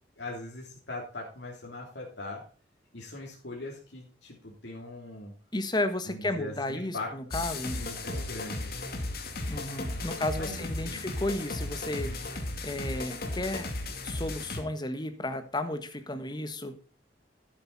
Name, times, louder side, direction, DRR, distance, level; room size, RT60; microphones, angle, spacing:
voice 1, 0.2-2.4 2.9-5.3 6.0-7.1 7.7-8.7 10.2-11.1, left 2 dB, 75° left, -3 dB, 3.2 m, -40 dB
voice 2, 5.5-7.8 9.5-13.7 14.0-16.7, left 1 dB, 25° left, 9 dB, 1.4 m, -33 dB
sound 1, 7.3-14.6, left 2 dB, 60° left, 2.4 m, -35 dB
11.5 x 9.1 x 4.1 m, 0.37 s
head